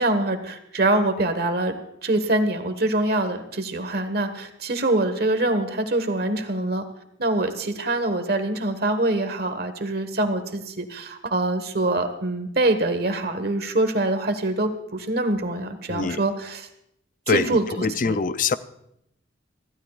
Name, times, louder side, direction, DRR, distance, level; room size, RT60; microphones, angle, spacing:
voice 1, 0.0-1.8 2.0-6.8 7.2-16.7 17.3-18.2, right 2 dB, 55° right, 8 dB, 1.4 m, -24 dB
voice 2, 15.9-16.2 17.3-18.6, left 4 dB, 45° left, 13 dB, 0.5 m, -23 dB
24.0 x 15.5 x 2.4 m, 0.77 s
head